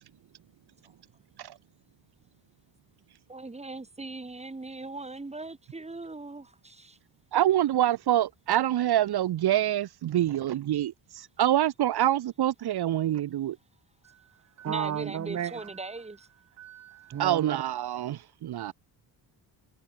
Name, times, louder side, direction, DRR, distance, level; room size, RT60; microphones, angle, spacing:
voice 1, 3.3-7.0 14.6-16.3, right 3 dB, 15° right, 6.7 m, -39 dB
voice 2, 7.3-13.6 17.2-18.7, right 12 dB, 60° right, 1.7 m, -26 dB
voice 3, 14.6-15.7 16.6-17.6 18.6-18.7, right 10 dB, 40° right, 1.0 m, -34 dB
cardioid pair, 135°, 43 cm